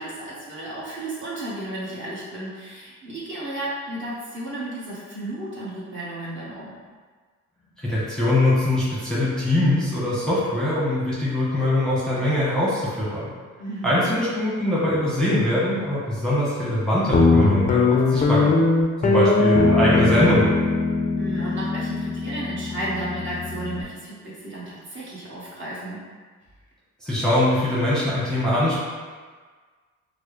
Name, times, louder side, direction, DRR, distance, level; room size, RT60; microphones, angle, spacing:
voice 1, 0.0-6.8 13.6-14.2 21.2-26.0, right 1 dB, 40° right, -8 dB, 1.4 m, -33 dB
voice 2, 7.8-13.3 13.8-18.5 19.0-20.5 27.0-28.8, left 1 dB, ahead, -9 dB, 1.0 m, -22 dB
Guitar, 17.1-23.8, left 3 dB, 25° left, 0.4 m, -21 dB
4.5 x 2.0 x 3.1 m, 1.5 s
cardioid pair, 90°, 30 cm